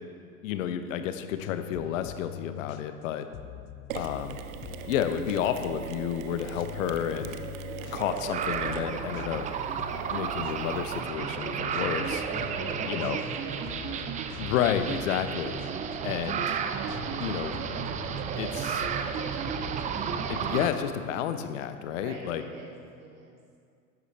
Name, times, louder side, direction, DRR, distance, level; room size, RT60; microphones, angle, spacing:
voice 1, 0.4-3.3 3.9-4.4 4.9-7.3 7.9-9.4 10.1-12.2 12.9-13.2 14.4-15.6 16.0-16.6 17.2-17.6 18.3-18.9 20.3-22.4, left 9 dB, 60° left, 9 dB, 0.9 m, -31 dB
sound 1, 1.0-20.7, left 11 dB, 40° left, 0.6 m, -45 dB
Mechanisms, 3.9-11.0, right 9 dB, 65° right, 0.7 m, -41 dB
voice 2, 7.6-8.1 12.2-14.1 21.9-23.4, right 2 dB, 50° right, -3 dB, 2.9 m, -44 dB
sound 2, 7.9-20.7, right 7 dB, 20° right, 0.4 m, -32 dB
13.0 x 10.0 x 3.3 m, 2.2 s
figure-of-eight pair, 85°, 44 cm